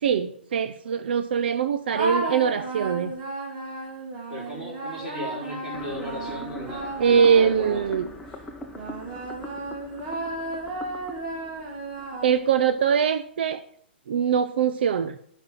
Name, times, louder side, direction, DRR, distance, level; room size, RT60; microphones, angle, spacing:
voice 1, 0.0-3.1 7.0-8.1 12.2-13.6 14.1-15.2, right 7 dB, 60° right, 11 dB, 0.6 m, -22 dB
sound 1, 1.9-8.2 8.7-12.7, right 2 dB, 40° right, 4.0 m, -34 dB
voice 2, 4.3-8.0, equal, 10° right, -6 dB, 4.9 m, -36 dB
sound 2, 5.7-12.8, left 1 dB, 5° left, 0.9 m, -42 dB
8.9 x 6.1 x 7.3 m, 0.63 s
hypercardioid pair, 145°, 6 cm